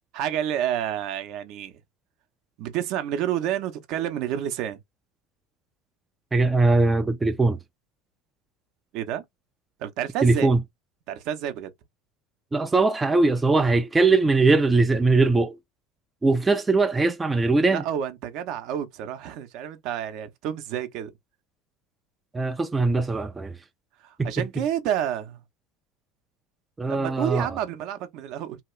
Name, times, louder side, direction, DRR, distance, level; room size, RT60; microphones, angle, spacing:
voice 1, 0.1-1.8 2.6-4.8 8.9-9.2 9.8-10.5 11.1-11.7 17.7-21.1 24.0-25.4 26.9-28.6, right 10 dB, 60° right, 0.6 m, -29 dB
voice 2, 6.3-7.6 10.2-10.6 12.5-15.6 16.2-17.8 22.3-23.6 24.2-24.3 26.8-27.5, right 3 dB, 15° right, 0.3 m, -21 dB
2.8 x 2.3 x 3.0 m
supercardioid pair, 115°, 0 cm